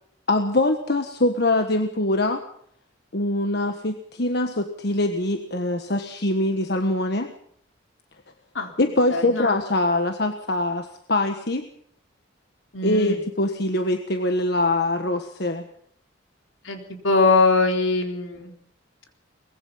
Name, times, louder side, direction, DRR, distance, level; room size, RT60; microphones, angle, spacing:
voice 1, 0.3-2.4 3.1-7.3 8.8-11.7 12.8-15.6, left 2 dB, 55° left, 6 dB, 1.4 m, -23 dB
voice 2, 9.1-9.5 12.7-13.2 16.6-18.5, left 3 dB, 75° left, 3 dB, 4.0 m, -22 dB
23.5 x 20.5 x 5.7 m, 0.64 s
head